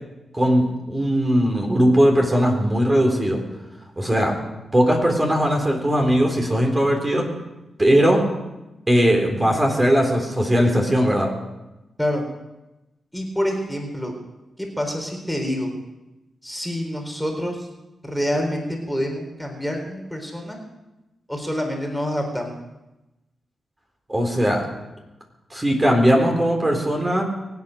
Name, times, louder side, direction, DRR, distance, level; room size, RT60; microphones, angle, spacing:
voice 1, 0.3-3.4 4.0-4.4 4.7-7.3 7.8-8.2 8.9-11.3 24.1-24.6 25.5-27.2, equal, 20° right, 1 dB, 4.0 m, -19 dB
voice 2, 13.1-14.1 14.6-15.7 16.4-17.7 18.0-20.6 21.3-22.6, equal, ahead, 1 dB, 3.9 m, -27 dB
23.0 x 8.9 x 6.7 m, 1.0 s
cardioid pair, 70°, 0 cm